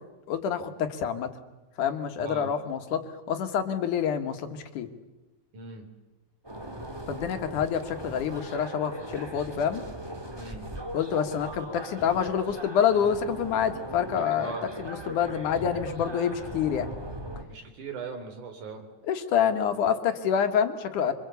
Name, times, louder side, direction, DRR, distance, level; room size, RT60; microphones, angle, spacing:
voice 1, 0.3-1.3 1.8-3.0 3.3-4.9 7.1-9.8 10.9-14.5 14.8-16.9 19.0-21.1, left 8 dB, 80° left, 8 dB, 3.0 m, -27 dB
voice 2, 2.2-2.5 5.5-5.9 7.6-7.7 10.3-10.7 14.4-14.7 17.5-18.9, right 3 dB, 75° right, 5 dB, 4.7 m, -39 dB
sound 1, 6.4-17.4, right 1 dB, 10° right, 1.5 m, -39 dB
26.0 x 24.5 x 8.2 m, 1.0 s
omnidirectional pair, 3.6 m